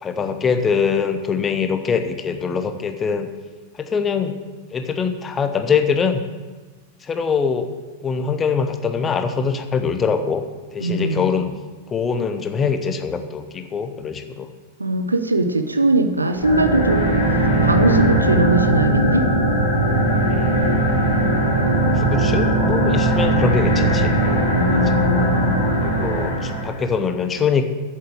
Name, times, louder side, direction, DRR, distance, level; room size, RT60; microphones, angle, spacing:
voice 1, 0.0-3.3 3.8-4.4 4.7-6.2 7.0-7.7 8.0-10.4 10.7-11.5 11.9-14.5 17.5-17.8 18.4-18.5 20.3-20.6 21.8-24.8 25.8-27.6, left 6 dB, 20° left, 8 dB, 0.9 m, -23 dB
voice 2, 10.8-11.3 14.8-17.0 17.6-19.3 24.5-25.6, right 2 dB, 80° right, 8 dB, 0.7 m, -20 dB
sound 1, 16.3-26.8, right 1 dB, 65° left, 3.0 m, -19 dB
8.1 x 7.4 x 7.7 m, 1.3 s
figure-of-eight pair, 90°, 0 cm